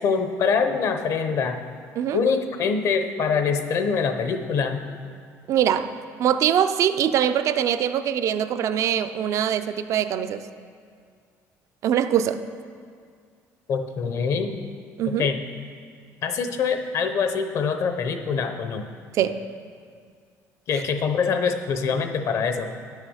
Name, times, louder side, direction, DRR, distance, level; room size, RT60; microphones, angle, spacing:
voice 1, 0.0-1.6 2.1-4.8 13.7-14.6 15.1-15.4 16.2-18.8 20.7-22.7, left 5 dB, 55° left, 7 dB, 0.8 m, -24 dB
voice 2, 5.5-5.9 6.2-10.4 11.8-12.4 15.0-15.3 19.1-19.4, right 9 dB, 55° right, 11 dB, 0.5 m, -23 dB
10.5 x 6.5 x 6.4 m, 2.2 s
cardioid pair, 140°, 6 cm